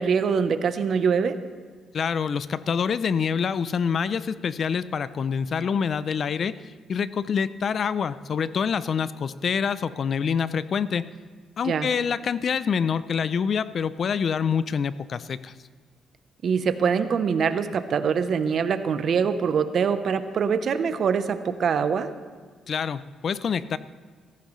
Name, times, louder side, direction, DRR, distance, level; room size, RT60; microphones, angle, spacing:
voice 1, 0.0-1.4 11.6-11.9 16.4-22.1, right 6 dB, 60° right, 11 dB, 0.8 m, -24 dB
voice 2, 1.9-11.1 11.6-15.5 22.7-23.8, left 6 dB, 50° left, 16 dB, 0.4 m, -26 dB
15.0 x 14.0 x 3.2 m, 1.5 s
cardioid pair, 90°, 0 cm